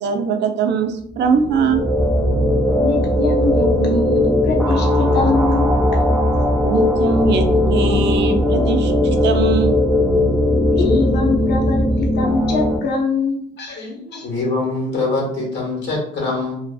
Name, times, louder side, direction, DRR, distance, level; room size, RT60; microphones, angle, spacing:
voice 1, 0.0-1.8 6.6-9.7, right 5 dB, 75° right, 7 dB, 0.4 m, -21 dB
sound 1, 1.2-12.8, left 1 dB, ahead, 0.7 m, -18 dB
voice 2, 2.8-5.8 10.8-14.3, left 3 dB, 65° left, 1 dB, 0.7 m, -23 dB
voice 3, 13.7-16.6, left 3 dB, 90° left, -2 dB, 1.2 m, -24 dB
2.4 x 2.4 x 2.3 m, 0.67 s
cardioid pair, 100°, 18 cm